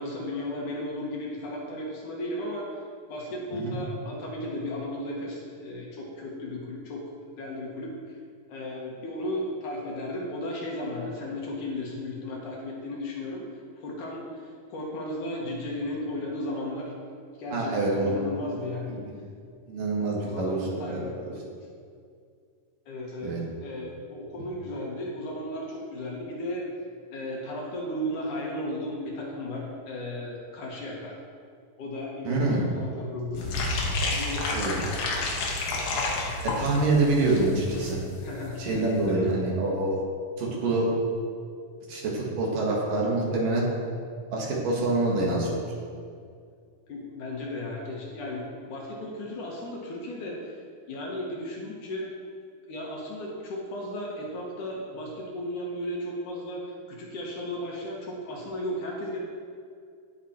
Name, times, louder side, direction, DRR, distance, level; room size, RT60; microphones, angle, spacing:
voice 1, 0.0-2.8 3.1-7.1 7.4-7.9 8.5-13.4 13.8-14.3 14.7-16.9 17.4-19.0 20.2-21.4 22.9-26.7 27.1-31.2 31.8-33.5 34.1-34.9 38.2-39.4 46.9-50.5 50.9-52.1 52.7-59.2, left 1 dB, 65° left, -2 dB, 2.7 m, -35 dB
voice 2, 17.5-18.1 18.9-19.0 19.7-21.0 23.2-23.4 32.2-32.7 34.5-34.8 36.4-38.0 38.6-40.0 40.4-40.9 41.9-43.7 44.3-45.6, right 2 dB, 70° right, -3 dB, 3.3 m, -26 dB
sound 1, 33.3-37.9 38.2-38.3 38.5-38.8 39.0-39.1, left 2 dB, 85° left, 3.2 m, -30 dB
16.0 x 6.0 x 4.5 m, 2.2 s
omnidirectional pair, 4.1 m